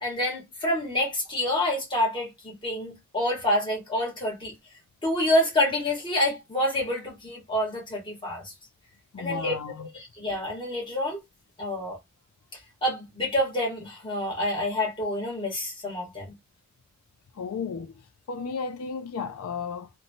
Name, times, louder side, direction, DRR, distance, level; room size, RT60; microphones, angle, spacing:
voice 1, 0.0-4.5 5.0-8.5 9.2-11.2 11.6-12.0 12.8-16.3, left 1 dB, 20° left, 1.1 m, -27 dB
voice 2, 9.1-9.9 17.3-19.9, left 5 dB, 85° left, 0.4 m, -34 dB
2.9 x 2.2 x 2.6 m
head